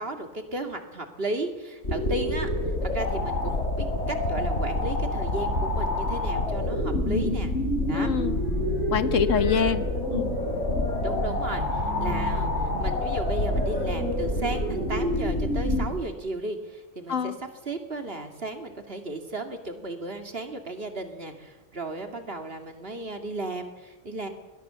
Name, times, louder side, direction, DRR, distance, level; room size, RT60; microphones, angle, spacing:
voice 1, 0.0-7.5 7.8-8.1 11.0-24.3, right 2 dB, 45° right, 6 dB, 2.7 m, -35 dB
sound 1, 1.8-15.9, left 1 dB, 55° left, 4.4 m, -27 dB
sound 2, 7.8-15.0, equal, 90° left, 7.0 m, -37 dB
voice 2, 7.9-8.4 8.9-10.3 17.1-17.4, left 7 dB, 75° left, 12 dB, 1.4 m, -25 dB
22.0 x 21.0 x 7.1 m, 1.1 s
omnidirectional pair, 1.4 m